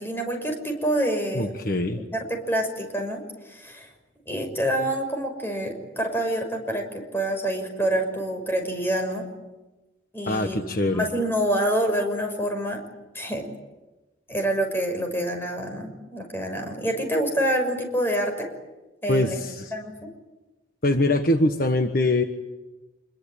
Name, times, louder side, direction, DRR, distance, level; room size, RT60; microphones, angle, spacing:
voice 1, 0.0-1.5 2.1-3.9 4.3-9.2 10.1-10.7 10.9-12.8 13.1-13.5 14.3-18.5 19.0-19.4 19.7-19.9, right 1 dB, 10° left, 4 dB, 6.0 m, -27 dB
voice 2, 1.3-2.0 10.3-11.1 19.1-19.7 20.8-22.2, left 1 dB, 50° left, 6 dB, 1.4 m, -23 dB
27.0 x 22.5 x 9.0 m, 1.1 s
head